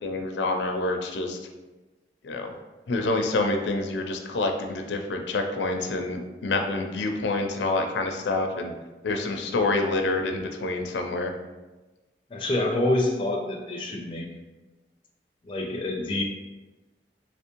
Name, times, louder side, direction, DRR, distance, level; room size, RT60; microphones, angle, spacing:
voice 1, 0.0-1.4 2.2-2.5 2.9-8.7 9.0-11.3, left 2 dB, 85° left, 4 dB, 0.4 m, -27 dB
voice 2, 12.3-14.3 15.4-16.2, left 1 dB, 30° left, 0 dB, 0.4 m, -26 dB
3.4 x 3.0 x 2.9 m, 1.1 s
head